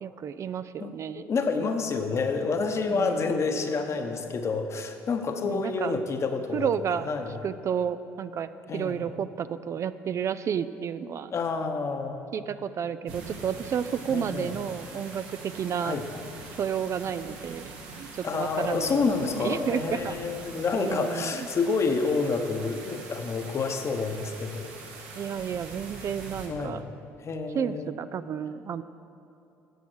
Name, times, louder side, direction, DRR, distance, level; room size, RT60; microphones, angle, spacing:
voice 1, 0.0-1.2 2.6-3.2 5.4-5.9 6.5-7.1 7.4-11.3 12.3-16.0 16.6-19.1 19.4-20.2 20.7-21.5 25.2-26.8 27.5-28.8, right 8 dB, 45° right, 13 dB, 0.3 m, -31 dB
voice 2, 0.8-6.7 7.1-7.4 8.7-9.0 11.3-12.3 14.1-14.5 15.8-16.0 18.2-24.7 26.5-26.8 27.2-27.9, left 4 dB, 40° left, 5 dB, 1.0 m, -28 dB
sound 1, 13.1-26.5, right 3 dB, 80° right, 1.5 m, -43 dB
9.5 x 7.0 x 6.2 m, 2.7 s
hypercardioid pair, 70°, 7 cm